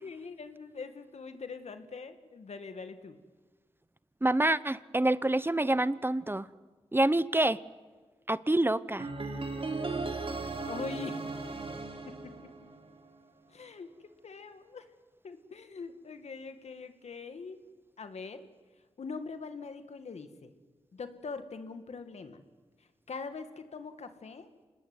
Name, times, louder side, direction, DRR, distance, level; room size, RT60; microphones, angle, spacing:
voice 1, 0.0-3.2 10.6-11.2 12.1-12.5 13.5-13.9 14.2-14.9 15.2-17.6 18.0-18.5 19.0-20.5 20.9-22.4 23.1-24.5, left 4 dB, 85° left, 9 dB, 2.0 m, -43 dB
voice 2, 4.2-6.5 6.9-7.6 8.3-9.1, right 1 dB, 20° right, 17 dB, 0.9 m, -27 dB
sound 1, 9.0-13.1, right 3 dB, 60° right, 3.5 m, -37 dB
26.0 x 20.0 x 9.6 m, 1.4 s
cardioid pair, 55°, 11 cm